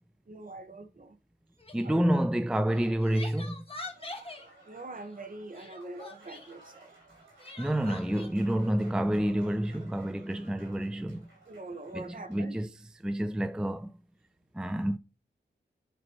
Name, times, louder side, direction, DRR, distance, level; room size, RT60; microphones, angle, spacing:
voice 1, 0.3-1.2 1.8-2.2 4.7-6.9 10.3-10.4 11.5-12.6, right 2 dB, 45° right, 1.0 m, -43 dB
Crying sobbing, 1.6-1.9 2.7-4.5 5.5-6.5 7.4-8.3, left 2 dB, 30° left, 1.3 m, -44 dB
voice 2, 1.7-3.6 7.6-11.2 11.9-12.0 12.3-12.7 13.0-13.9 14.6-15.0, right 1 dB, 5° right, 0.4 m, -28 dB
Applause / Crowd, 3.7-12.5, right 2 dB, 90° right, 3.5 m, -57 dB
8.3 x 3.0 x 4.4 m
cardioid pair, 55°, 19 cm